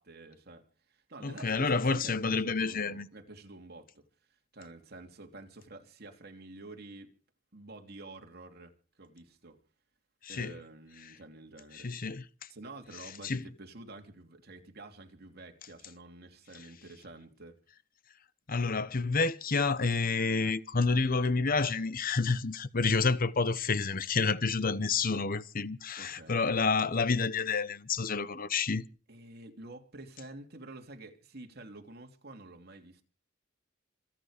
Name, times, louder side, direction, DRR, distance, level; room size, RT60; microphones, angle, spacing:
voice 1, 0.0-7.1 7.5-8.7 9.0-9.6 10.3-11.9 12.5-17.6 26.0-26.4 29.1-33.0, right 2 dB, 55° right, 3.0 m, -49 dB
voice 2, 1.2-3.1 10.2-10.5 11.7-12.3 13.2-13.4 18.5-28.8, left 4 dB, 45° left, 0.9 m, -29 dB
27.0 x 9.2 x 5.1 m
head